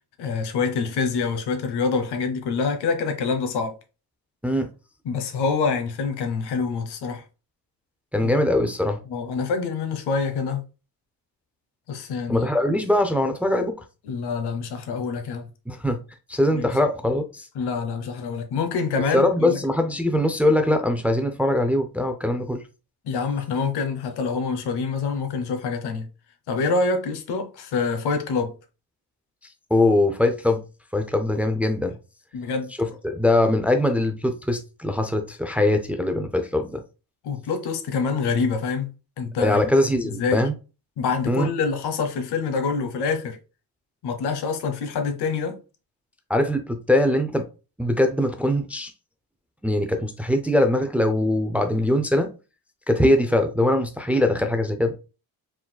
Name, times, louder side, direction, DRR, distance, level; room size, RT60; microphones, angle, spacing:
voice 1, 0.2-3.7 5.0-7.2 8.2-8.3 9.1-10.6 11.9-12.5 14.1-15.5 16.5-16.7 17.5-19.6 23.0-26.1 26.5-28.5 32.3-32.7 37.2-38.9 39.2-39.6 40.0-40.5 41.0-43.4 44.0-45.6, left 5 dB, 85° left, 1.2 m, -26 dB
voice 2, 8.1-9.0 12.3-13.7 15.7-16.0 16.3-17.5 19.1-22.6 29.7-30.6 30.9-32.0 32.8-36.8 39.4-40.5 41.3-41.5 46.3-47.5 47.8-48.9 49.6-52.3 52.9-54.9, left 1 dB, 5° right, 0.4 m, -22 dB
4.7 x 3.9 x 2.2 m
cardioid pair, 160°, 39 cm